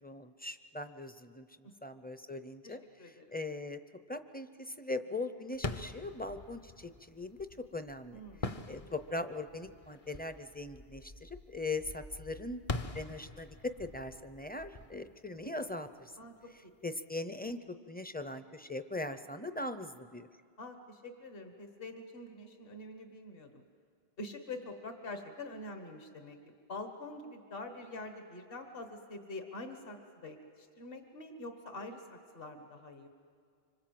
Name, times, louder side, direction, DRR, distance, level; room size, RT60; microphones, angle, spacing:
voice 1, 0.0-2.8 3.0-3.8 4.1-7.4 7.7-8.2 8.7-12.6 12.9-13.5 13.8-16.1 16.8-20.3, left 2 dB, 10° left, 10 dB, 0.6 m, -40 dB
voice 2, 2.6-3.3 8.1-8.6 16.2-16.5 20.6-23.6 24.2-26.4 26.7-33.1, left 2 dB, 60° left, 5 dB, 1.8 m, -45 dB
sound 1, 5.5-16.1, left 2 dB, 40° left, 0.8 m, -44 dB
25.5 x 25.5 x 7.8 m, 2.1 s
omnidirectional pair, 1.1 m